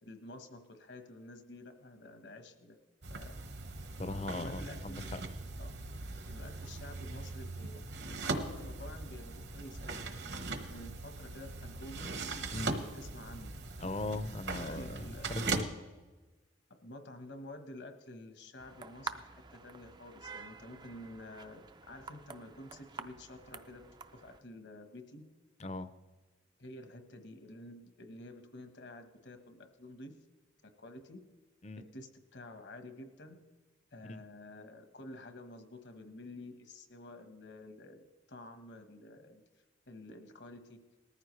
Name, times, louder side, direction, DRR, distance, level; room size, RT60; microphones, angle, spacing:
voice 1, 0.0-2.8 3.1-3.4 4.2-5.0 5.6-5.7 6.2-7.8 8.3-12.1 12.9-13.5 14.5-15.4 16.7-23.8 24.1-25.2 26.6-30.1 30.8-31.2 31.9-33.3 33.9-38.0 38.3-39.4 39.9-40.8, left 1 dB, 65° left, 1.3 m, -50 dB
sound 1, 3.0-15.6, right 3 dB, 65° right, 1.1 m, -40 dB
voice 2, 4.0-5.2 12.5-12.8 13.8-15.7 25.6-25.9 31.6-31.8 34.1-34.2, left 2 dB, 35° left, 0.6 m, -39 dB
sound 2, 18.6-24.4, right 5 dB, 20° right, 0.4 m, -48 dB
19.5 x 14.0 x 3.2 m
head